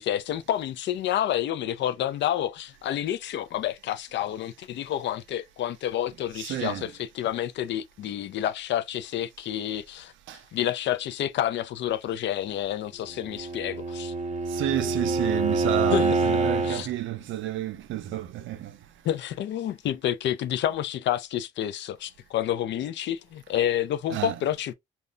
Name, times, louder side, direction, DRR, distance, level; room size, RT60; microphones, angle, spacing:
voice 1, 0.0-10.1 10.5-14.1 15.9-16.1 16.6-16.9 19.0-24.7, left 11 dB, 65° left, 0.4 m, -29 dB
voice 2, 6.4-6.8 10.3-10.4 14.5-18.8 24.1-24.4, right 13 dB, 75° right, 0.5 m, -30 dB
Bowed string instrument, 13.1-16.9, right 3 dB, 35° right, 0.6 m, -26 dB
2.3 x 2.1 x 3.7 m
cardioid pair, 90°, 20 cm